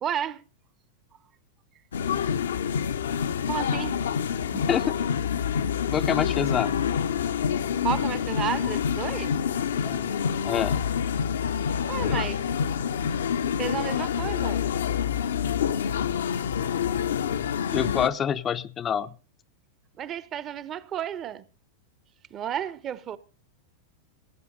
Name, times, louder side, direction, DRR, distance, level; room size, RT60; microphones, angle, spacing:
voice 1, 0.0-0.4 3.5-4.0 7.8-9.4 11.9-12.4 13.6-14.6 20.0-21.4 22.3-23.2, right 9 dB, 30° right, 0.8 m, -32 dB
sound 1, 1.9-18.1, left 7 dB, 65° left, 0.7 m, -27 dB
voice 2, 4.5-4.9 5.9-6.8 9.8-10.1 10.4-10.8 17.7-19.1, left 8 dB, 25° left, 0.5 m, -27 dB
16.5 x 8.3 x 5.3 m
figure-of-eight pair, 90°, 0 cm